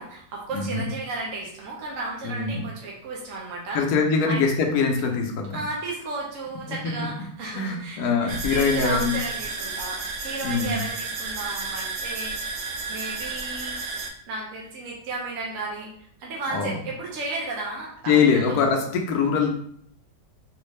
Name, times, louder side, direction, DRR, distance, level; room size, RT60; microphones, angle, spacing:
voice 1, 0.0-3.8 4.2-4.4 5.5-12.5 12.9-13.8 14.3-15.9 16.2-18.6, right 2 dB, 60° right, -3 dB, 0.9 m, -34 dB
voice 2, 0.5-0.8 2.2-2.6 3.7-5.6 7.5-9.1 10.4-10.7 16.5-16.8 18.1-19.5, left 5 dB, 70° left, 2 dB, 1.0 m, -23 dB
sound 1, 8.3-14.1, right 4 dB, 85° right, 1.3 m, -32 dB
3.5 x 2.4 x 3.1 m, 0.64 s
omnidirectional pair, 2.0 m